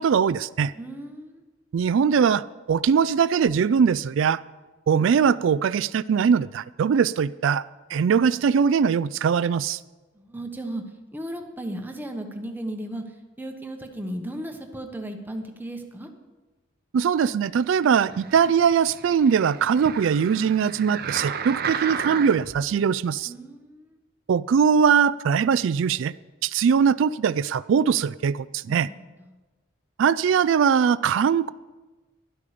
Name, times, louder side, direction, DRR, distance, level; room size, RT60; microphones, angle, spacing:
voice 1, 0.0-0.7 1.7-4.4 4.9-7.6 7.9-9.8 16.9-23.3 24.3-26.1 26.4-28.9 30.0-31.5, right 7 dB, 70° right, 17 dB, 0.3 m, -21 dB
voice 2, 0.7-1.4 10.2-10.8 11.1-13.0 13.4-16.1 23.3-24.0 28.7-29.0, right 1 dB, 10° right, 4 dB, 1.1 m, -35 dB
sound 1, 18.0-22.6 23.2-23.3, right 7 dB, 50° right, 0.7 m, -33 dB
12.5 x 11.5 x 5.0 m, 1.2 s
head